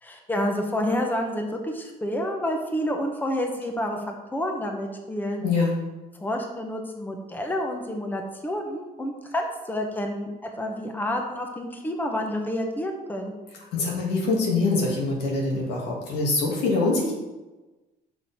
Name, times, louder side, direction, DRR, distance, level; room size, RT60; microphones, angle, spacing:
voice 1, 0.0-5.4 6.2-13.6, left 1 dB, 10° left, 2 dB, 1.1 m, -29 dB
voice 2, 5.4-5.8 13.7-17.1, left 3 dB, 90° left, -3 dB, 2.6 m, -24 dB
8.7 x 6.2 x 3.7 m, 1.1 s
cardioid pair, 110°, 17 cm